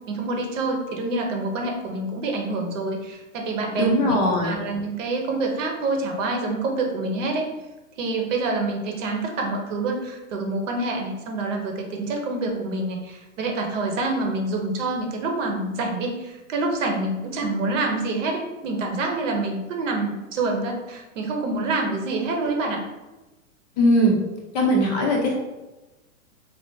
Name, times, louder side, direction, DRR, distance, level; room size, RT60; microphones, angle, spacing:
voice 1, 0.1-7.5 8.0-22.8, right 2 dB, 60° right, 2 dB, 0.9 m, -27 dB
voice 2, 3.8-4.6 23.8-24.2 24.5-25.3, equal, 30° left, 0 dB, 0.5 m, -20 dB
3.4 x 2.5 x 2.7 m, 1.1 s
hypercardioid pair, 140°, 42 cm